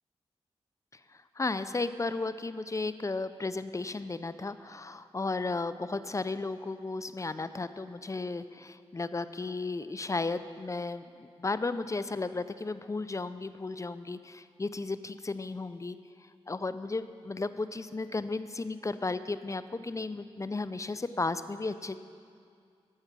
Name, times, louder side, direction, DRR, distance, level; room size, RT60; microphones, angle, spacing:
voice 1, 1.4-16.0 16.5-22.0, left 3 dB, 30° left, 13 dB, 0.5 m, -34 dB
13.0 x 8.0 x 6.1 m, 2.2 s
cardioid pair, 45°, 11 cm